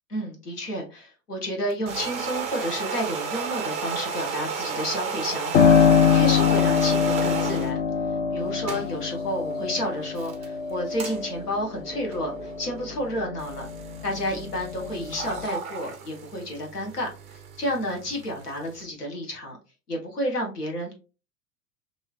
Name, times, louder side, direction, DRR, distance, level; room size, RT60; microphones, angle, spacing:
voice 1, 0.1-7.8 8.3-13.7 14.0-17.1 17.6-19.6 19.9-20.9, equal, 90° left, 1 dB, 1.1 m, -31 dB
sound 1, 1.7-7.7 8.4-18.8, right 5 dB, 15° right, 0.3 m, -34 dB
Piano, 5.5-14.0 14.4-15.4, left 7 dB, 50° left, 0.8 m, -23 dB
3.1 x 2.7 x 2.3 m, 0.32 s
figure-of-eight pair, 85°, 45 cm